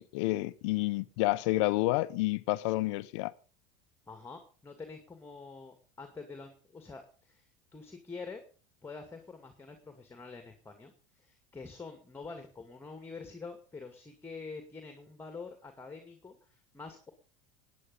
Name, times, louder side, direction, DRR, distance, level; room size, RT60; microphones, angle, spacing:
voice 1, 0.0-3.3, left 19 dB, 70° left, 0.7 m, -29 dB
voice 2, 4.1-8.4 8.8-17.1, left 4 dB, 15° left, 2.2 m, -46 dB
19.0 x 9.2 x 5.4 m
hypercardioid pair, 95°, 16 cm